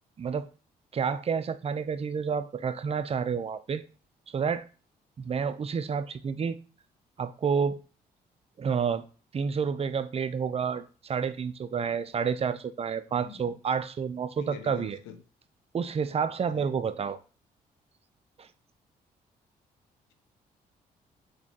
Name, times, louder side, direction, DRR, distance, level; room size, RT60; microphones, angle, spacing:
voice 1, 0.2-0.5 0.9-3.8 4.3-4.6 5.2-6.6 7.2-7.8 8.6-9.0 9.3-15.0 15.7-17.2 18.4-18.5, right 6 dB, 30° right, 0.4 m, -29 dB
voice 2, 13.1-13.6 14.4-15.2 16.5-16.7, left 9 dB, 85° left, 0.5 m, -46 dB
4.0 x 3.0 x 2.8 m
hypercardioid pair, 50°, 19 cm